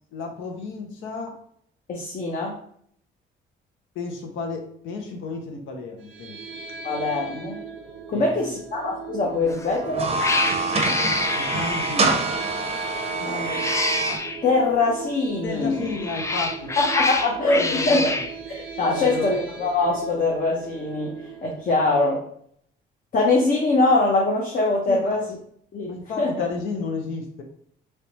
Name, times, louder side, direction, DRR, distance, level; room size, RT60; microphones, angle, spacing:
voice 1, 0.1-1.4 3.9-6.4 8.1-8.5 11.3-12.3 15.4-16.7 17.5-18.2 18.8-19.3 24.9-25.2 25.8-27.4, left 4 dB, 80° left, 3 dB, 0.8 m, -32 dB
voice 2, 1.9-2.5 6.8-7.6 8.1-10.1 13.2-13.6 14.4-15.9 16.8-18.2 18.5-21.1 21.4-22.2 23.1-25.2 25.7-26.4, left 3 dB, 45° left, -1 dB, 0.8 m, -23 dB
sound 1, 6.0-22.1, right 6 dB, 80° right, 0.6 m, -39 dB
Cat, 9.5-9.8 10.2-12.2 13.3-14.4 15.7-18.3, left 3 dB, 15° left, 0.3 m, -27 dB
sound 2, 9.8-14.2, right 3 dB, 30° right, 0.6 m, -25 dB
3.4 x 3.1 x 2.9 m, 0.65 s
cardioid pair, 90°, 20 cm